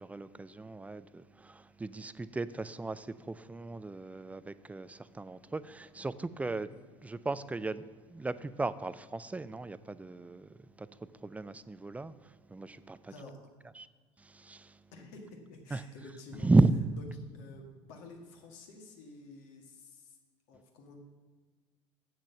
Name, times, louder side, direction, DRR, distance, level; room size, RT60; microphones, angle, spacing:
voice 1, 0.0-6.7 7.0-13.1 13.8-13.9 14.2-14.8 15.7-15.8 16.4-16.8, right 2 dB, 10° right, 0.4 m, -34 dB
voice 2, 14.9-16.5 17.3-20.2 20.5-20.9, left 2 dB, 60° left, 1.8 m, -50 dB
8.3 x 6.2 x 7.1 m
figure-of-eight pair, 65°, 15 cm